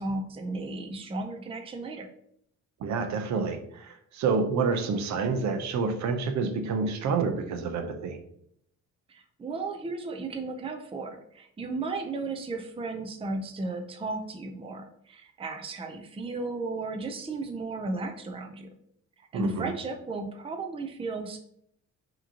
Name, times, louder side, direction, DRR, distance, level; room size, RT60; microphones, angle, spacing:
voice 1, 0.0-2.1 9.1-18.7 19.3-21.4, right 3 dB, 20° right, 5 dB, 0.5 m, -34 dB
voice 2, 2.8-8.2 19.3-19.7, right 4 dB, 65° right, 6 dB, 0.7 m, -28 dB
4.9 x 2.9 x 2.8 m, 0.70 s
cardioid pair, 90°, 30 cm